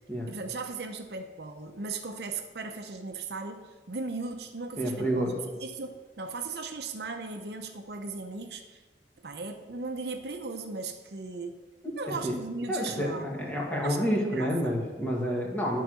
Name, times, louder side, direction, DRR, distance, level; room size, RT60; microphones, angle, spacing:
voice 1, 0.3-5.3 5.6-8.8 9.2-11.6 12.0-13.3 13.8-14.7, right 3 dB, 65° right, 5 dB, 0.7 m, -37 dB
voice 2, 4.8-5.3 12.1-12.4 12.7-15.8, equal, 10° left, -2 dB, 1.6 m, -29 dB
11.0 x 4.8 x 6.2 m, 1.2 s
head